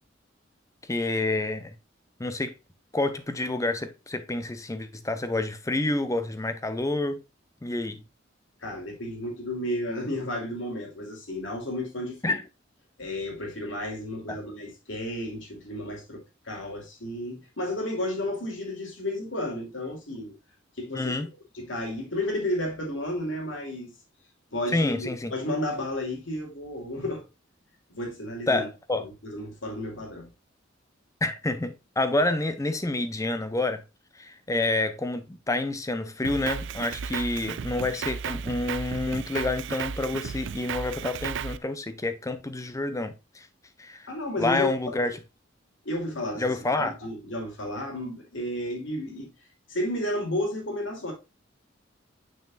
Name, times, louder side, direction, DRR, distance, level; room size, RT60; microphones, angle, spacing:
voice 1, 0.9-1.7 2.2-2.5 2.9-7.2 7.6-8.0 12.2-12.4 14.3-14.4 20.9-21.3 24.7-25.3 28.5-29.0 31.2-33.8 34.1-43.5 43.8-44.1 44.4-45.2 46.4-46.9, left 2 dB, 15° left, 0.6 m, -28 dB
voice 2, 8.6-12.4 13.0-20.3 20.8-21.2 21.5-23.9 24.5-27.2 27.9-28.7 29.0-30.3 44.1-45.1 45.8-49.3 49.7-51.1, left 1 dB, 70° left, 2.6 m, -32 dB
Drum kit, 36.2-41.6, right 7 dB, 65° right, 0.4 m, -34 dB
6.7 x 6.3 x 2.4 m
head